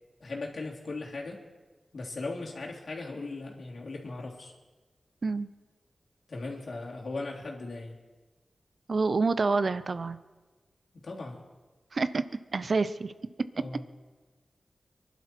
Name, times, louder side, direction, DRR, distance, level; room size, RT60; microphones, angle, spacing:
voice 1, 0.2-1.4 1.9-4.5 6.3-8.0 10.9-11.4 13.6-13.8, left 3 dB, 70° left, -2 dB, 3.1 m, -38 dB
voice 2, 8.9-10.2 11.9-12.2 12.5-13.1, right 4 dB, 60° right, 14 dB, 0.8 m, -27 dB
24.0 x 11.5 x 4.6 m, 1.3 s
cardioid pair, 55°, 0 cm